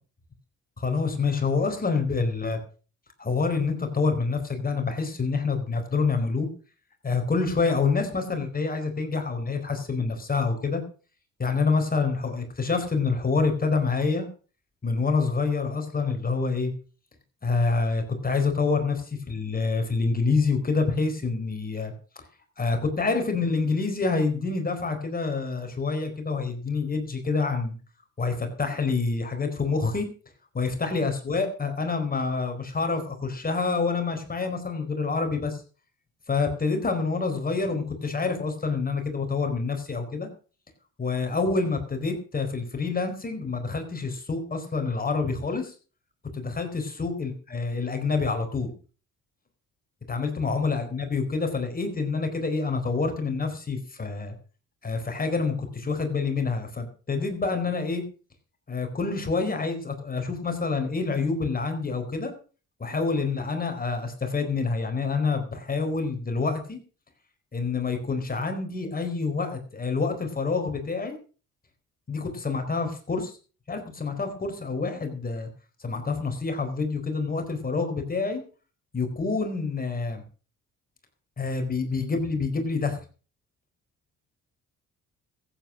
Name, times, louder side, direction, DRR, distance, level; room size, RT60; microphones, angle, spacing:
voice 1, 0.8-2.6 3.2-6.5 7.0-10.8 11.4-14.3 14.8-16.7 17.4-22.2 22.6-27.7 28.2-30.1 30.5-35.6 36.3-40.3 41.0-45.7 46.3-48.7 50.1-54.3 54.8-58.0 58.7-62.3 62.8-66.8 67.5-71.2 72.1-73.3 73.7-75.5 75.8-78.4 78.9-80.2 81.4-83.0, left 4 dB, 30° left, 6 dB, 4.4 m, -27 dB
15.0 x 9.1 x 6.3 m, 0.38 s
cardioid pair, 90°, 30 cm